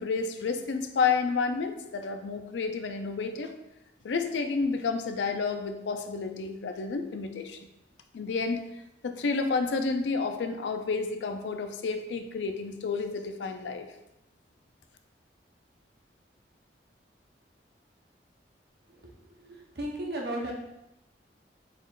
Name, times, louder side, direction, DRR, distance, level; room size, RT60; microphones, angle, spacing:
voice 1, 0.0-3.5 4.0-7.6 8.1-8.6 9.0-13.9, left 4 dB, 85° left, 7 dB, 0.4 m, -30 dB
voice 2, 18.9-20.5, right 1 dB, 60° right, -1 dB, 0.8 m, -36 dB
4.2 x 3.6 x 2.4 m, 0.90 s
head